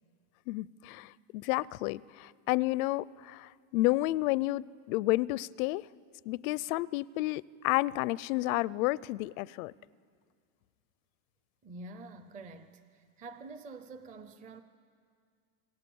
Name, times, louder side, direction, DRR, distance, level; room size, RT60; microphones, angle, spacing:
voice 1, 0.5-5.9 6.3-9.7, left 19 dB, 75° left, 0.6 m, -31 dB
voice 2, 11.6-14.6, right 3 dB, 20° right, 0.5 m, -47 dB
28.0 x 19.5 x 7.0 m
cardioid pair, 165°, 42 cm